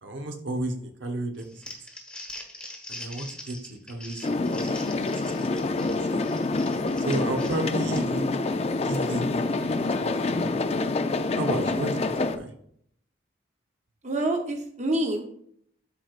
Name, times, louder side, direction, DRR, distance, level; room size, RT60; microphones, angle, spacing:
voice 1, 0.0-1.6 2.9-3.6 3.9-4.7 5.0-5.5 6.1-6.2 7.0-8.5 8.8-9.5 9.8-10.6 11.3-12.0 12.3-12.5, right 1 dB, 85° right, 4 dB, 1.0 m, -32 dB
Crumpling crinkling, 1.4-8.3, left 1 dB, 5° left, 1.1 m, -43 dB
sound 1, 4.2-12.4, left 3 dB, 35° left, 0.4 m, -27 dB
voice 2, 14.0-15.3, right 1 dB, 40° right, 3 dB, 0.8 m, -27 dB
12.5 x 4.5 x 2.4 m, 0.67 s
head